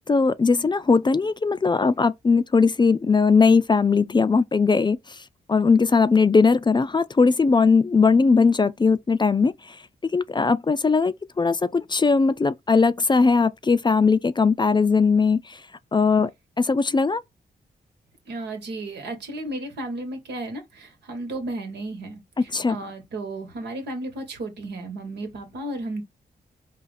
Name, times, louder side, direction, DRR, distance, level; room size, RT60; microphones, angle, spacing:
voice 1, 0.1-5.2 5.5-9.8 10.0-15.6 15.9-16.3 16.6-17.2 22.5-22.8, left 4 dB, 25° left, 0.4 m, -19 dB
voice 2, 18.2-26.0, right 2 dB, 80° right, 1.4 m, -34 dB
4.1 x 2.4 x 4.0 m
supercardioid pair, 45°, 17 cm